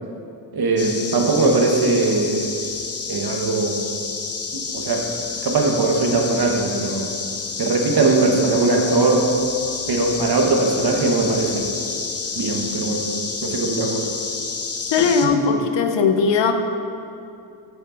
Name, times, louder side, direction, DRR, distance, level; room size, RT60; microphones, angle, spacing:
voice 1, 0.5-2.5 3.1-3.8 4.5-5.1 5.4-7.1 7.6-9.3 9.9-11.7 12.4-13.1 13.4-14.1 15.0-15.4, right 3 dB, 60° right, 2 dB, 1.2 m, -20 dB
sound 1, 0.8-15.3, left 4 dB, 35° left, 0.7 m, -29 dB
voice 2, 14.9-16.5, left 5 dB, 80° left, 7 dB, 0.7 m, -18 dB
8.4 x 6.7 x 3.8 m, 2.6 s
cardioid pair, 65°, 43 cm